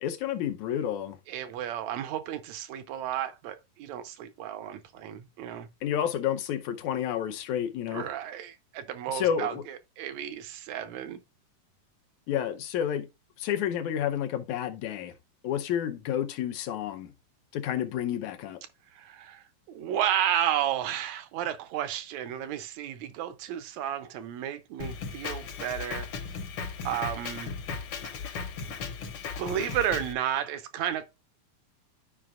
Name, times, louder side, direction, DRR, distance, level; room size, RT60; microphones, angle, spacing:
voice 1, 0.0-1.2 5.8-8.0 9.1-9.6 12.3-13.1 13.4-15.1 15.4-17.1 17.5-18.6, left 9 dB, 75° left, 1.9 m, -30 dB
voice 2, 1.3-5.7 7.9-11.2 18.9-26.1 26.8-27.6 29.4-31.1, right 10 dB, 75° right, 1.7 m, -32 dB
Drum kit, 24.8-30.1, left 5 dB, 60° left, 1.5 m, -36 dB
12.5 x 4.9 x 2.4 m
omnidirectional pair, 3.7 m